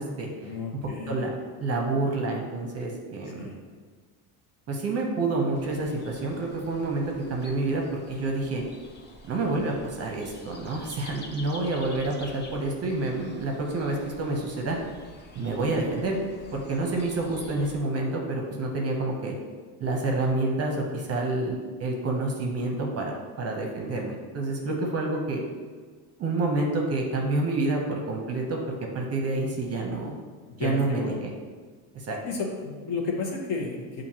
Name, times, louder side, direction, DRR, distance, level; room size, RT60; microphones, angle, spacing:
voice 1, 0.4-1.3 3.4-3.5 24.7-24.8 30.5-31.2 32.2-34.0, left 3 dB, 55° left, -1 dB, 1.1 m, -32 dB
voice 2, 1.1-3.5 4.7-8.6 9.3-14.8 15.3-16.2 16.5-19.3 19.8-23.1 23.4-25.4 26.2-30.1 30.6-31.1 31.9-32.2, right 2 dB, 35° right, 1 dB, 0.6 m, -28 dB
sound 1, 5.5-17.8, left 2 dB, 25° left, 0.4 m, -48 dB
7.0 x 2.6 x 2.8 m, 1.5 s
cardioid pair, 130°, 46 cm